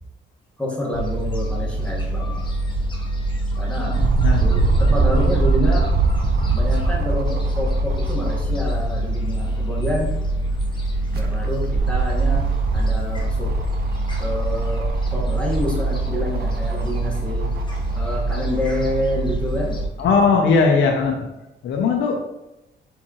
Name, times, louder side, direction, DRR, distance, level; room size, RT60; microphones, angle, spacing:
voice 1, 0.6-2.4 3.6-4.0 4.4-5.9 6.5-10.2 11.0-13.6 14.2-17.5 17.9-19.8, left 1 dB, 5° left, -4 dB, 1.4 m, -28 dB
Gull seagull, 0.9-19.9, right 1 dB, 25° left, 0.9 m, -25 dB
voice 2, 3.7-4.4 20.0-21.2 21.6-22.2, left 4 dB, 70° left, 1 dB, 0.6 m, -19 dB
sound 1, 3.9-9.0 9.4-9.5 10.9-19.4 20.2-20.3, right 3 dB, 50° right, 0.5 m, -24 dB
4.5 x 3.7 x 2.9 m, 0.92 s
cardioid pair, 90°, 20 cm